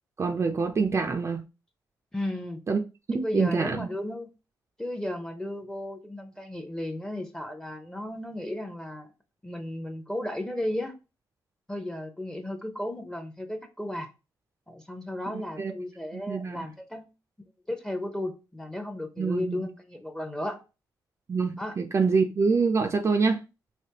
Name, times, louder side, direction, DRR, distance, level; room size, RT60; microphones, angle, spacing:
voice 1, 0.2-1.4 2.7-2.8 3.1-3.9 15.3-15.7 16.1-16.7 19.2-19.7 21.3-23.4, right 4 dB, 35° right, 0.4 m, -26 dB
voice 2, 2.1-2.6 3.1-4.3 4.8-9.1 9.4-11.0 11.7-14.1 14.7-17.1 17.7-20.6 21.6-21.8, left 1 dB, 10° left, 0.7 m, -34 dB
3.3 x 2.9 x 2.8 m
cardioid pair, 70°, 8 cm